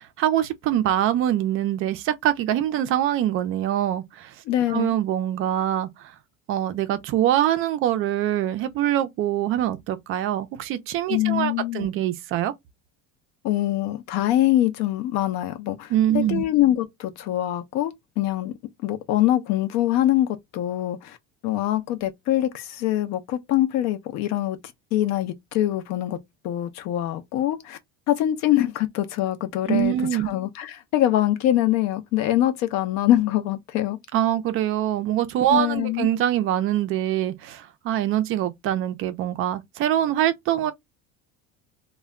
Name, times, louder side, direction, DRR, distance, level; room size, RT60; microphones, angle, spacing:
voice 1, 0.0-4.3 4.7-6.1 6.5-12.5 15.9-16.4 29.7-30.3 34.1-40.7, right 12 dB, 40° right, 0.4 m, -24 dB
voice 2, 4.5-4.9 11.1-11.9 13.4-18.5 18.8-21.2 21.4-24.6 24.9-26.2 26.4-27.8 28.1-29.9 30.3-34.0 35.5-36.1, left 13 dB, 55° left, 0.5 m, -24 dB
2.1 x 2.1 x 3.5 m
cardioid pair, 160°, 32 cm